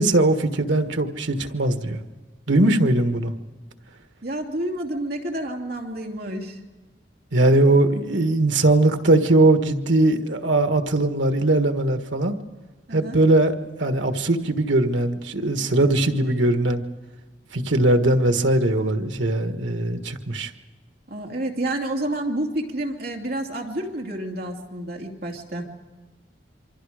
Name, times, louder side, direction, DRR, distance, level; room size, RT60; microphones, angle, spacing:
voice 1, 0.0-2.0 2.5-3.3 7.3-12.4 12.9-13.5 13.8-16.8 17.5-20.5, right 2 dB, 90° right, 7 dB, 1.6 m, -20 dB
voice 2, 4.2-6.6 12.9-13.2 21.1-25.7, right 1 dB, 55° right, 1 dB, 2.7 m, -29 dB
27.0 x 25.0 x 5.0 m, 1.3 s
head